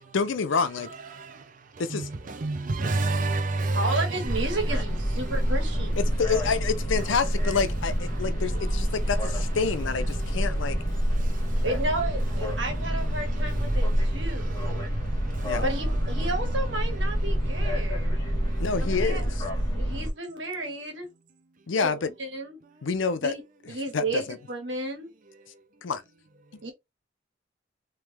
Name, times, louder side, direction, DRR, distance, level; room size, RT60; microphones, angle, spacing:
voice 1, 0.1-0.9 1.8-2.1 6.0-10.8 15.4-15.7 18.6-19.4 21.7-22.1 22.8-23.3 23.6-24.4 25.8-26.0 26.5-26.6, left 5 dB, 80° left, 0.6 m, -28 dB
voice 2, 1.1-4.7 5.1-5.9 8.1-9.1 10.1-11.7 12.5-15.6 16.8-18.6, right 2 dB, 45° right, 0.5 m, -33 dB
voice 3, 3.7-6.2 11.6-14.9 15.6-18.2 18.8-19.2 19.7-21.1 21.8-22.6 23.2-23.4 23.7-25.1 26.6-26.7, right 2 dB, 70° right, 1.6 m, -32 dB
sound 1, 4.3-20.1, equal, 20° left, 1.5 m, -27 dB
3.3 x 3.1 x 3.3 m
head